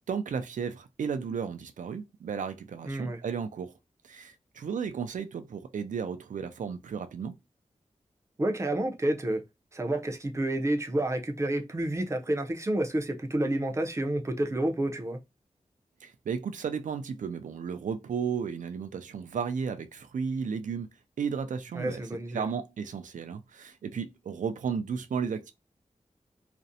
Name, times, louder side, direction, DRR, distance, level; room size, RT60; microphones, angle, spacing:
voice 1, 0.1-3.7 4.0-7.3 16.0-20.9 21.2-22.0 22.3-25.5, right 6 dB, 85° right, 0.4 m, -34 dB
voice 2, 2.8-3.2 8.4-9.4 9.7-15.2 21.7-22.5, right 1 dB, 20° right, 0.5 m, -29 dB
2.5 x 2.0 x 2.6 m
wide cardioid pair, 110°, 13 cm